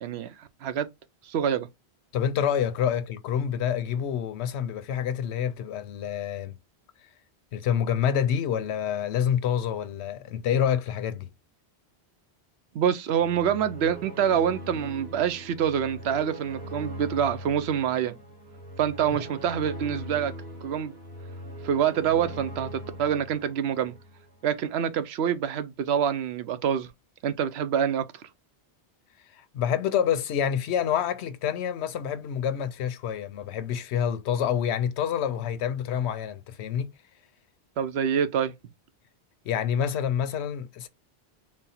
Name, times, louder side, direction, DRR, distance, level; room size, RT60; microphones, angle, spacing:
voice 1, 0.0-0.9 1.2-1.7 12.7-18.2 18.8-20.3 20.6-20.9 21.6-23.9 24.4-26.9 27.2-28.1 37.8-38.5, right 8 dB, 75° right, 0.8 m, -26 dB
voice 2, 2.1-6.5 7.5-11.3 19.1-19.2 29.4-36.9 39.5-40.9, left 8 dB, 85° left, 0.9 m, -27 dB
sound 1, 13.1-24.4, equal, 40° right, 1.9 m, -41 dB
4.2 x 2.0 x 4.1 m
omnidirectional pair, 1.1 m